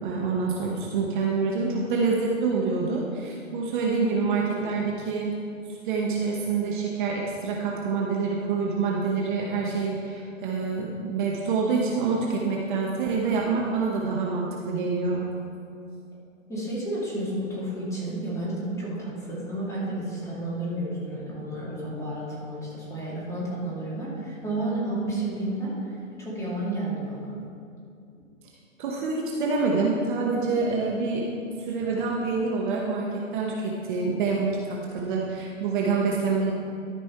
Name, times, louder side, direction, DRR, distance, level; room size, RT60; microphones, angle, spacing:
voice 1, 0.0-5.3 5.8-15.3 28.8-31.3 31.6-36.5, right 4 dB, 40° right, -2 dB, 1.0 m, -26 dB
voice 2, 16.5-27.3, right 1 dB, 5° left, -7 dB, 2.1 m, -31 dB
13.0 x 5.2 x 4.6 m, 2.5 s
hypercardioid pair, 140°, 40 cm